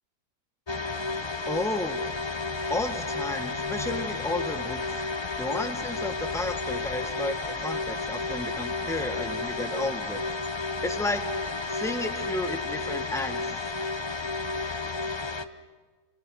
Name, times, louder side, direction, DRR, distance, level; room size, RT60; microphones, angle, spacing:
sound 1, 0.7-15.4, left 3 dB, 30° left, 0.5 m, -32 dB
voice 1, 1.5-2.0 2.7-5.0 5.4-10.3 10.8-11.2 11.7-13.5, left 2 dB, ahead, 7 dB, 1.3 m, -32 dB
29.5 x 26.5 x 6.4 m, 1.4 s
omnidirectional pair, 1.8 m